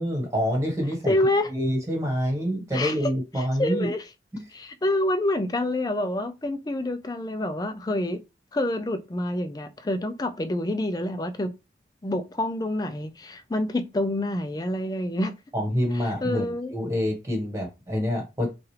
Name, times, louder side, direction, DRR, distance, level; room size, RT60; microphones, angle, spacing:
voice 1, 0.0-1.1 1.5-3.9 4.3-4.4 15.5-16.4 16.7-18.5, equal, 15° right, 1.3 m, -26 dB
voice 2, 1.1-1.5 2.7-3.0 3.4-4.1 4.5-8.2 8.5-11.5 12.0-15.4 16.2-16.7, left 1 dB, 20° left, 0.4 m, -27 dB
5.9 x 2.4 x 3.2 m
head